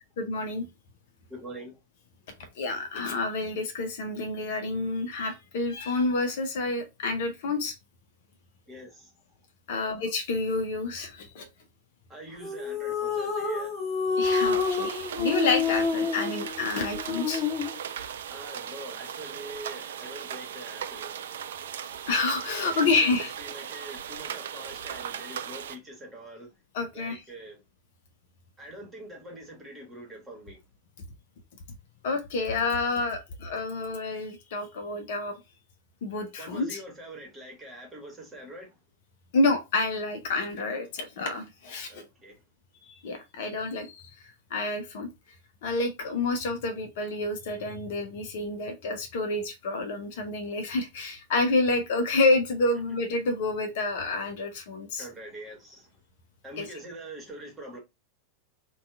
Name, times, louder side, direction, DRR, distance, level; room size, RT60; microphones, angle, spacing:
voice 1, 0.2-0.7 2.6-7.7 9.7-11.5 14.2-17.4 22.1-23.3 26.7-27.2 32.0-35.4 36.0-36.8 39.3-42.0 42.9-44.1 44.5-45.1 45.6-55.1 56.6-56.7, left 3 dB, 55° left, 0.6 m, -28 dB
voice 2, 1.3-1.7 8.7-9.1 9.7-9.9 12.1-13.8 18.3-21.2 22.6-26.5 26.9-27.6 28.6-30.6 36.4-38.8 41.9-42.4 55.0-55.9 56.4-57.8, right 1 dB, 15° right, 1.2 m, -44 dB
sound 1, 12.4-17.8, left 5 dB, 20° left, 1.1 m, -28 dB
sound 2, 14.2-25.8, right 8 dB, 60° right, 0.3 m, -38 dB
2.7 x 2.3 x 3.4 m
figure-of-eight pair, 90°, 0 cm